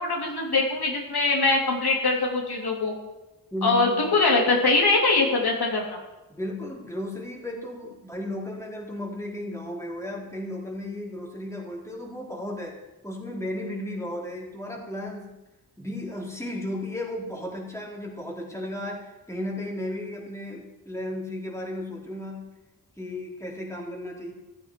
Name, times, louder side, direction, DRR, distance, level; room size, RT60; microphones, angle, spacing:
voice 1, 0.0-2.9 3.6-6.0, left 3 dB, 85° left, 0 dB, 3.1 m, -22 dB
voice 2, 3.5-4.0 6.3-12.7 13.0-15.3 15.8-22.5 23.0-24.3, left 1 dB, 10° left, -2 dB, 3.5 m, -34 dB
15.0 x 13.5 x 4.6 m, 1.0 s
wide cardioid pair, 120°, 37 cm